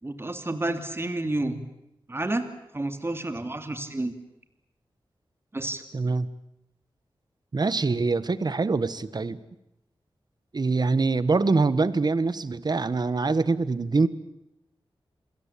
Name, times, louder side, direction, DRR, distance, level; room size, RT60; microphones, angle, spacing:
voice 1, 0.0-1.6 2.1-2.5 2.7-4.1 5.5-5.8, right 2 dB, 25° right, 8 dB, 2.8 m, -30 dB
voice 2, 5.9-6.3 7.5-9.4 10.5-14.1, right 3 dB, 45° right, 15 dB, 1.4 m, -24 dB
28.5 x 21.5 x 8.6 m, 0.84 s
wide cardioid pair, 90°, 10 cm